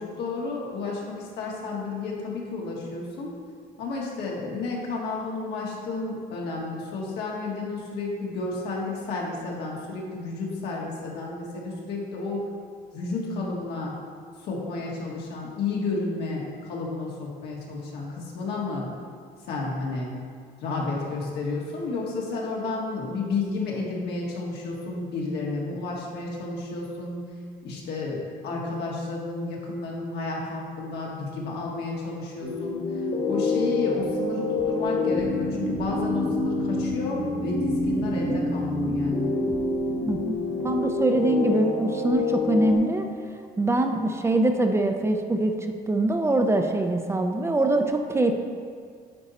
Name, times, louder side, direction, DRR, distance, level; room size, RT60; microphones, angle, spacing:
voice 1, 0.0-3.4 3.8-12.5 12.9-13.9 14.4-18.9 19.5-20.1 20.6-27.3 27.6-39.3, left 3 dB, 75° left, -3 dB, 1.6 m, -31 dB
sound 1, 32.4-42.8, left 2 dB, 35° left, 1.5 m, -27 dB
voice 2, 40.6-43.1 43.6-45.5 45.9-48.3, right 2 dB, 15° right, 4 dB, 0.5 m, -23 dB
9.8 x 4.1 x 4.1 m, 2.1 s
cardioid pair, 110°, 17 cm